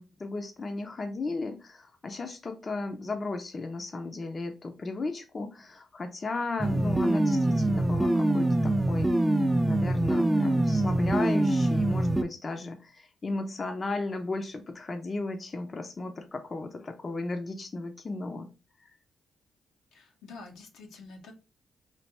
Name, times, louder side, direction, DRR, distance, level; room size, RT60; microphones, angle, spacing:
voice 1, 0.0-9.1 9.7-18.5, left 3 dB, 40° left, 6 dB, 0.6 m, -35 dB
sound 1, 6.6-12.2, right 1 dB, 10° right, 0.5 m, -24 dB
voice 2, 19.9-21.3, left 3 dB, 85° left, 2 dB, 0.9 m, -47 dB
3.3 x 2.5 x 4.0 m, 0.29 s
supercardioid pair, 60°, 0 cm